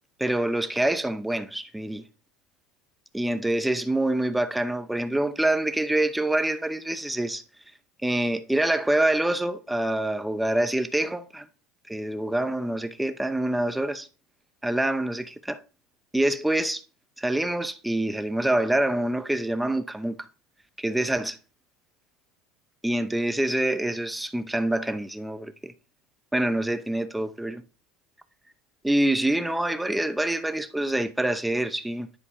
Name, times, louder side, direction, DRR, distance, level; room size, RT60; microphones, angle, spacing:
voice 1, 0.2-2.0 3.1-7.4 8.0-11.5 11.9-14.1 14.6-15.6 16.1-16.8 17.2-20.3 20.8-21.4 22.8-25.7 26.3-27.6 28.8-32.1, right 1 dB, 5° right, 0.7 m, -26 dB
9.9 x 4.6 x 4.3 m
supercardioid pair, 120°, 0 cm